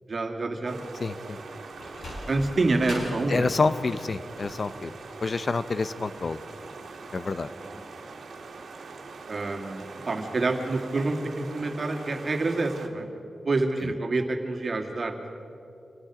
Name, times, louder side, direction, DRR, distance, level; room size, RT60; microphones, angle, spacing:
voice 1, 0.1-0.8 2.3-3.5 7.6-7.7 9.3-13.1 13.4-15.1, right 2 dB, 50° right, 3 dB, 2.4 m, -27 dB
sound 1, 0.6-12.9, right 4 dB, 85° right, 2.2 m, -43 dB
voice 2, 1.0-1.4 3.3-4.9 5.2-6.4 7.1-7.5, left 3 dB, 50° left, 13 dB, 0.7 m, -27 dB
Sliding door, 1.7-6.7, left 1 dB, 75° left, 6.3 m, -42 dB
27.0 x 19.0 x 5.0 m, 2.8 s
wide cardioid pair, 85°, 0 cm